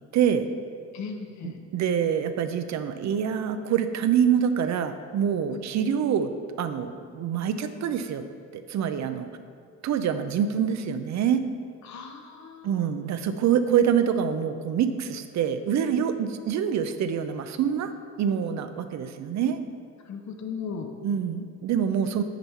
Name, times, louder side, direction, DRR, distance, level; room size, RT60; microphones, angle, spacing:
voice 1, 0.1-0.5 1.4-6.3 6.6-8.2 8.5-9.3 9.8-11.4 12.6-17.9 18.2-19.6 21.0-22.2, right 8 dB, 65° right, 10 dB, 0.6 m, -25 dB
voice 2, 0.9-1.6 11.8-12.9 20.0-20.9, left 5 dB, 65° left, 5 dB, 0.9 m, -37 dB
6.7 x 4.6 x 5.6 m, 2.2 s
cardioid pair, 90°, 30 cm